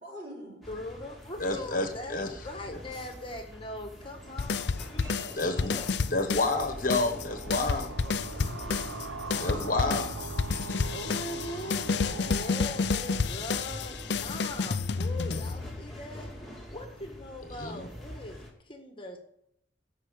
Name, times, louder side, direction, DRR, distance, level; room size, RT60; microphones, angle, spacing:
voice 1, 0.0-0.7 4.5-5.8 8.3-9.0 9.4-10.9, equal, 35° right, -10 dB, 4.6 m, -49 dB
sound 1, 0.6-18.5, equal, ahead, 2.7 m, -45 dB
voice 2, 0.7-5.3 5.6-5.9 7.6-8.4 10.9-16.3 16.7-18.4 18.6-19.2, left 1 dB, 25° left, 4 dB, 1.6 m, -41 dB
voice 3, 1.4-2.3 2.7-2.8 5.4-5.8 6.1-7.9 9.4-10.1 10.7-10.8 17.6-17.9, left 2 dB, 45° left, 6 dB, 1.4 m, -29 dB
sound 2, 4.4-6.6 6.9-15.9, left 4 dB, 60° left, 0.5 m, -30 dB
sound 3, 7.0-14.5, right 4 dB, 90° right, 0.8 m, -42 dB
14.5 x 5.7 x 8.3 m, 0.75 s
head